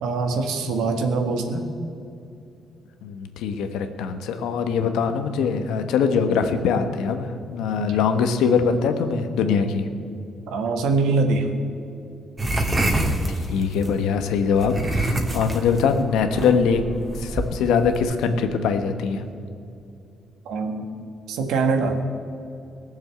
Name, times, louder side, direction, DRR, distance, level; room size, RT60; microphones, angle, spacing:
voice 1, 0.0-1.7 7.8-8.0 10.5-11.5 20.4-20.8 21.3-22.0, right 4 dB, 90° right, 5 dB, 1.6 m, -23 dB
voice 2, 3.0-9.9 13.3-16.8 17.2-19.2, left 6 dB, 90° left, 7 dB, 1.2 m, -22 dB
sound 1, 12.4-13.9 14.6-18.0, right 1 dB, 20° right, 2.0 m, -25 dB
18.5 x 7.3 x 7.7 m, 2.6 s
cardioid pair, 90°, 0 cm